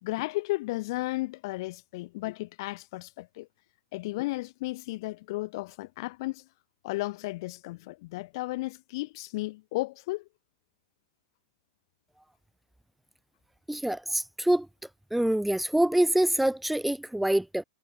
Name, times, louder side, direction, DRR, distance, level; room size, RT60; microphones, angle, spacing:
voice 1, 0.0-3.5 3.9-6.4 6.8-10.3, left 20 dB, 50° left, 4.3 m, -34 dB
voice 2, 13.7-14.7 15.1-17.6, right 1 dB, ahead, 1.0 m, -25 dB
supercardioid pair, 160°, 3 cm